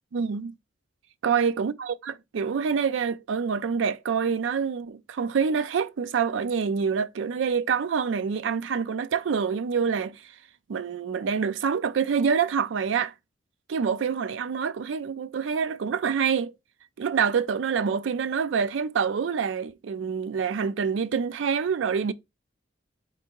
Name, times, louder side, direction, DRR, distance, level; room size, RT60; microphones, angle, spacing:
voice 1, 0.1-0.5 1.2-10.3 10.7-13.1 13.7-16.5 17.0-22.1, right 6 dB, 80° right, 0.4 m, -26 dB
4.5 x 2.7 x 4.4 m
head